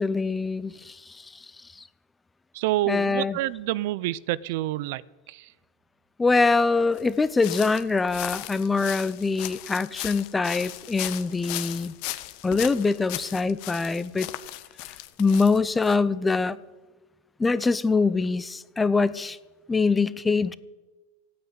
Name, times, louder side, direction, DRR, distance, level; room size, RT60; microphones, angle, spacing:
voice 1, 0.0-1.4 2.9-3.4 6.2-11.9 12.4-14.3 15.2-16.6 17.4-19.4 19.7-20.5, left 4 dB, 10° left, 16 dB, 0.6 m, -24 dB
voice 2, 2.5-5.0 5.3-5.5, right 16 dB, 60° right, 20 dB, 0.5 m, -28 dB
sound 1, 7.0-16.0, left 16 dB, 50° left, 1.1 m, -37 dB
16.0 x 9.5 x 9.6 m, 1.2 s
supercardioid pair, 145°, 0 cm